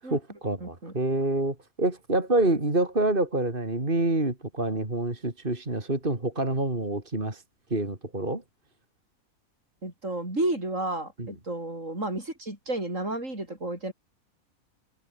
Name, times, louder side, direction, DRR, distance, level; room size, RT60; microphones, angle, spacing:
voice 1, 0.0-7.4 7.7-8.4 11.2-11.3, right 2 dB, 40° right, 4.0 m, -27 dB
voice 2, 0.6-1.0 9.8-13.9, right 2 dB, 65° right, 7.1 m, -32 dB
omnidirectional pair, 1.5 m